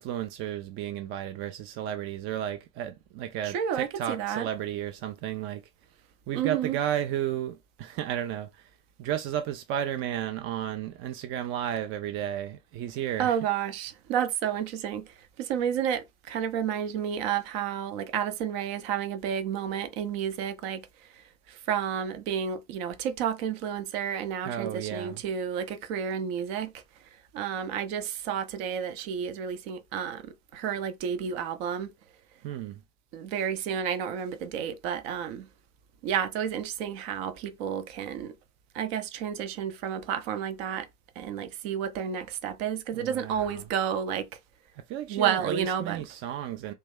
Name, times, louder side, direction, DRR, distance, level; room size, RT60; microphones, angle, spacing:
voice 1, 0.0-5.6 6.3-8.7 9.0-13.4 24.4-25.2 32.4-32.8 42.9-43.7 44.9-46.7, right 11 dB, 30° right, 0.5 m, -33 dB
voice 2, 3.4-4.5 6.3-6.8 13.2-26.8 27.3-31.9 33.1-35.5 36.0-38.3 38.7-40.9 41.2-44.3 45.1-46.0, right 8 dB, 50° right, 0.8 m, -31 dB
3.2 x 3.0 x 3.5 m
figure-of-eight pair, 75°, 40 cm